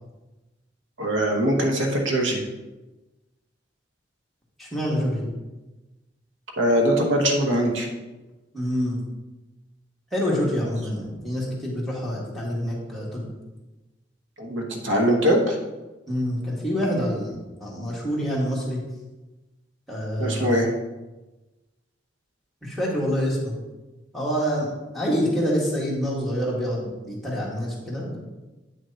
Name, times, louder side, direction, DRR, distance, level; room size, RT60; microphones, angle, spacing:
voice 1, 1.0-2.4 6.6-7.9 14.4-15.6 20.2-20.7, equal, 85° right, 1 dB, 1.1 m, -22 dB
voice 2, 4.6-5.3 8.5-9.0 10.1-13.3 16.1-18.8 19.9-20.6 22.6-23.6 24.1-24.7 24.9-28.2, equal, ahead, -6 dB, 1.7 m, -26 dB
8.9 x 6.2 x 2.8 m, 1.1 s
head